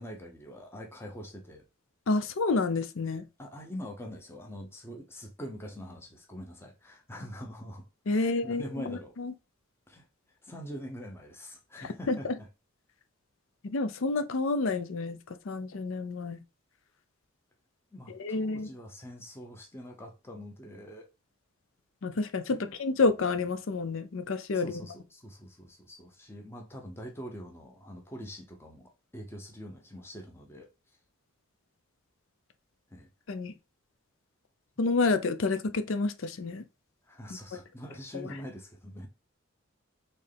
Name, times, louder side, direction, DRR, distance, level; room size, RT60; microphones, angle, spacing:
voice 1, 0.0-1.7 3.4-7.8 8.1-9.1 9.9-12.5 17.9-21.1 22.5-22.7 24.5-30.7 32.9-33.1 37.1-39.1, equal, 10° left, 0.7 m, -44 dB
voice 2, 2.1-3.2 8.1-9.3 12.1-12.3 13.6-15.2 15.5-16.4 18.2-18.7 22.0-24.7 33.3-33.5 34.8-36.6 38.1-38.3, left 3 dB, 70° left, 0.5 m, -29 dB
4.4 x 3.2 x 3.3 m
head